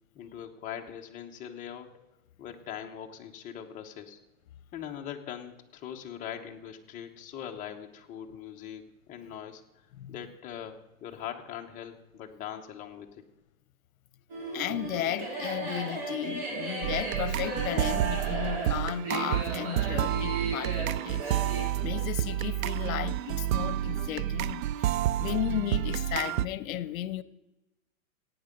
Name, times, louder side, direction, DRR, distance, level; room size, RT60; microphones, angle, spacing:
voice 1, 0.1-1.9 2.4-4.2 4.7-13.2, left 9 dB, 20° left, 0.9 m, -41 dB
sound 1, 14.3-21.7, right 2 dB, 40° right, 4.5 m, -36 dB
voice 2, 14.5-21.3 21.8-24.9 25.2-27.2, left 12 dB, 75° left, 0.8 m, -34 dB
sound 2, 16.8-26.5, right 13 dB, 70° right, 0.5 m, -30 dB
15.5 x 9.3 x 5.2 m
supercardioid pair, 160°, 42 cm